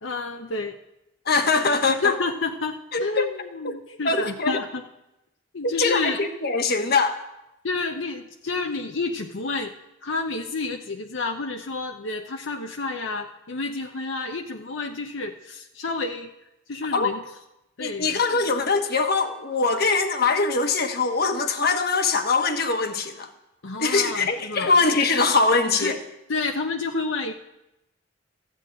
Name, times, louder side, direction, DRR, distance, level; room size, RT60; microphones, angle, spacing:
voice 1, 0.0-0.7 1.9-4.8 5.5-6.2 7.6-9.7 10.0-16.3 16.7-17.2 17.8-18.5 23.6-24.7 25.8-25.9 26.3-27.3, left 3 dB, 80° left, 3 dB, 0.9 m, -29 dB
voice 2, 1.3-2.2 2.9-3.3 3.6-3.8 4.0-4.6 5.6-7.2 16.9-17.1 17.8-23.3 23.8-26.0, left 4 dB, 55° left, 6 dB, 1.3 m, -22 dB
14.5 x 8.1 x 8.8 m, 0.89 s
head